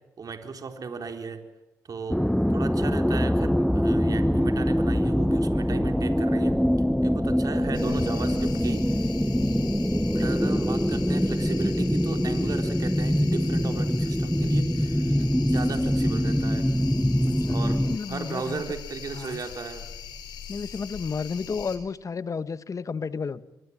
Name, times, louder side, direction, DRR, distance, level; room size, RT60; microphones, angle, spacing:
voice 1, 0.2-1.4 1.9-2.2 2.5-6.5 7.0-9.1 10.1-15.2 15.4-16.7 17.5-17.8 18.1-19.9, right 4 dB, 55° right, 5 dB, 4.1 m, -36 dB
sound 1, 2.1-18.0, equal, ahead, 0.9 m, -24 dB
sound 2, 7.7-21.8, left 7 dB, 80° left, 4.4 m, -41 dB
voice 2, 17.8-18.6 19.1-19.4 20.5-23.4, left 5 dB, 45° left, 14 dB, 1.4 m, -32 dB
26.0 x 23.0 x 7.5 m, 0.97 s
hypercardioid pair, 45°, 8 cm